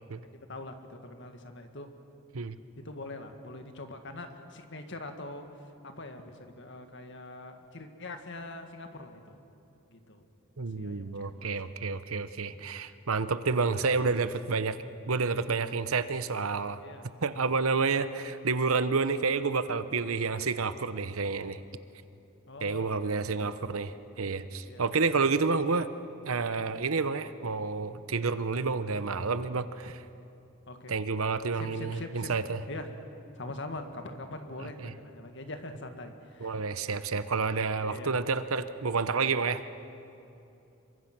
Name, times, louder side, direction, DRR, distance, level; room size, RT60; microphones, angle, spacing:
voice 1, 0.2-1.9 2.8-9.4 9.9-10.3 10.6-11.5 16.8-17.3 20.0-20.2 22.5-23.8 24.6-24.9 25.3-25.4 30.7-30.9 31.5-32.3 32.7-32.9 33.4-36.7 37.8-38.1, left 2 dB, 55° left, 6 dB, 1.9 m, -43 dB
voice 2, 10.6-14.8 15.1-16.8 17.2-21.6 22.6-25.9 26.2-30.0 30.9-32.6 34.6-34.9 36.4-39.6, right 4 dB, 85° right, 12 dB, 0.9 m, -29 dB
27.0 x 24.0 x 6.1 m, 2.8 s
head